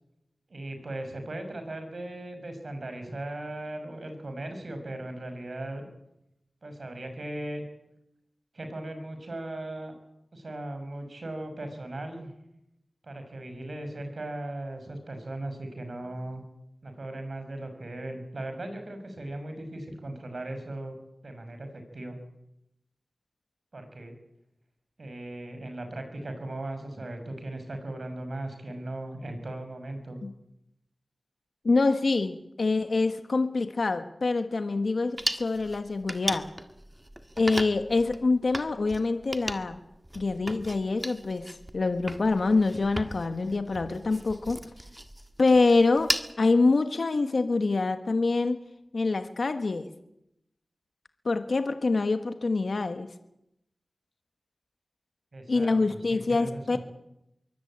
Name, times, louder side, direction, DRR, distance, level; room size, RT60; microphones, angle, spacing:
voice 1, 0.5-5.8 6.6-7.6 8.5-9.9 10.3-12.3 13.0-16.4 16.8-21.0 21.2-22.2 23.7-24.1 25.0-30.2 55.3-56.8, right 1 dB, 55° right, 7 dB, 6.0 m, -38 dB
voice 2, 31.6-36.5 37.4-39.8 40.1-44.6 45.4-48.6 48.9-49.9 51.2-53.1 55.5-56.8, left 3 dB, 60° left, 8 dB, 1.3 m, -25 dB
sound 1, 35.2-46.3, right 1 dB, 15° right, 1.7 m, -37 dB
23.0 x 16.5 x 8.7 m, 0.85 s
wide cardioid pair, 70°, 0 cm